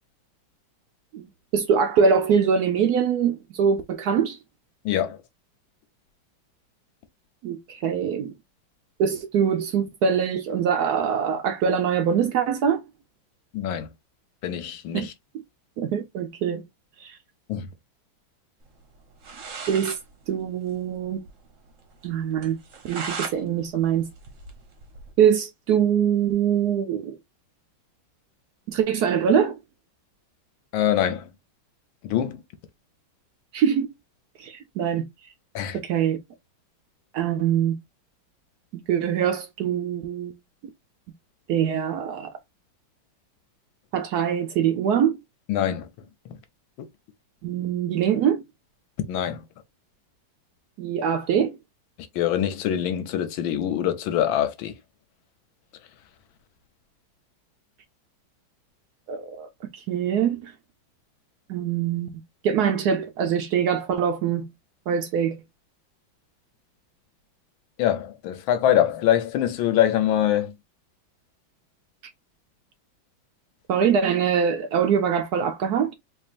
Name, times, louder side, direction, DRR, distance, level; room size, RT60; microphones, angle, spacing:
voice 1, 1.1-4.4 7.4-8.3 9.0-12.8 14.9-15.1 15.8-16.6 17.0-17.2 19.7-20.0 20.3-21.2 22.0-22.6 22.8-24.1 25.2-27.2 28.7-29.5 33.5-33.9 34.4-35.1 35.7-36.2 37.1-37.8 38.7-40.3 41.5-42.3 43.9-45.2 47.4-48.4 50.8-51.6 59.1-60.5 61.5-62.1 62.4-64.5 64.9-65.4 73.7-75.9, right 7 dB, 75° right, 0.9 m, -23 dB
voice 2, 4.8-5.2 13.5-13.9 14.4-15.1 17.5-17.7 30.7-31.3 32.0-32.4 35.5-35.8 45.5-45.9 46.2-46.4 49.1-49.4 52.1-54.8 67.8-70.5, left 11 dB, 85° left, 1.5 m, -24 dB
sound 1, 19.0-19.1 19.2-20.0 20.4-20.5 20.7-20.8 21.2-21.3 21.7-21.8 22.4-23.4 23.8-25.1, right 5 dB, 50° right, 1.1 m, -36 dB
4.5 x 3.0 x 2.4 m
omnidirectional pair, 2.2 m